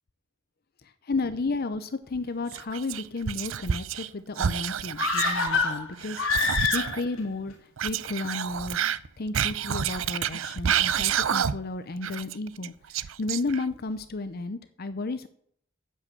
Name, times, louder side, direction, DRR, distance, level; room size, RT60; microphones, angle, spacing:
voice 1, 0.8-7.5 7.8-8.8 9.2-15.3, left 3 dB, 50° left, 11 dB, 0.7 m, -33 dB
Whispering, 2.5-4.1 4.4-7.0 7.8-11.8 12.0-13.8, right 8 dB, 80° right, 0.5 m, -29 dB
sound 1, 5.0-7.2 7.5-7.6, left 4 dB, 85° left, 2.8 m, -26 dB
9.2 x 7.7 x 7.5 m, 0.63 s
head